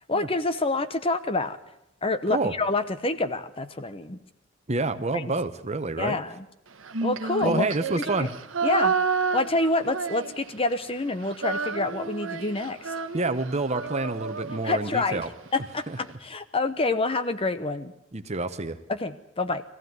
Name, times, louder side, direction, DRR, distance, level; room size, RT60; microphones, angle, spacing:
voice 1, 0.1-1.6 2.0-4.2 5.1-5.2 6.0-6.5 7.0-7.7 8.0-8.3 8.6-8.9 9.3-12.9 14.6-15.2 15.5-17.9 18.9-19.6, left 2 dB, 30° left, 11 dB, 0.9 m, -27 dB
voice 2, 4.7-6.2 7.4-8.3 13.1-15.3 15.9-16.0 18.1-18.8, right 2 dB, 35° right, 10 dB, 1.0 m, -28 dB
Female singing, 6.8-10.7 11.0-15.3, right 5 dB, 85° right, 1.1 m, -30 dB
22.0 x 15.0 x 9.4 m, 0.84 s
head